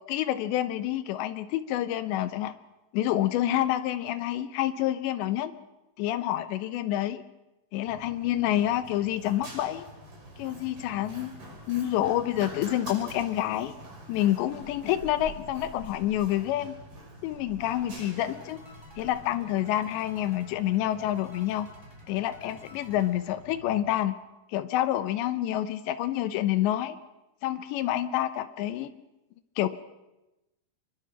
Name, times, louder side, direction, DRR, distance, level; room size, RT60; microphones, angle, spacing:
voice 1, 0.1-2.6 2.9-5.5 6.0-7.2 7.7-9.8 10.4-11.4 11.7-13.7 14.1-16.7 17.2-18.6 19.0-21.7 22.1-24.2 24.5-27.0 27.4-28.9 29.6-29.7, left 13 dB, 80° left, 12 dB, 3.2 m, -28 dB
Run, 7.9-23.9, right 1 dB, 45° right, 6.9 m, -47 dB
sound 1, 17.7-24.0, equal, 10° right, 6.7 m, -55 dB
26.5 x 22.5 x 6.0 m, 0.98 s
omnidirectional pair, 5.1 m